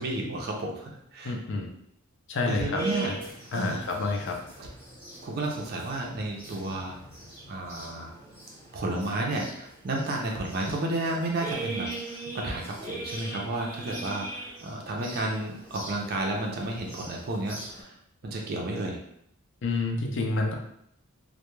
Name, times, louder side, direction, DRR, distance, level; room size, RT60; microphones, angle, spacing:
voice 1, 0.0-1.3 2.5-3.1 3.5-3.8 4.6-4.7 5.2-6.9 7.5-8.1 8.7-17.9 18.2-19.0, right 2 dB, 45° right, 0 dB, 0.4 m, -32 dB
voice 2, 1.2-1.7 2.3-3.2 3.5-4.4 19.6-20.5, left 3 dB, 55° left, 1 dB, 0.4 m, -29 dB
sound 1, 2.7-17.8, right 2 dB, 10° left, 0.7 m, -41 dB
2.2 x 2.0 x 3.0 m, 0.72 s
head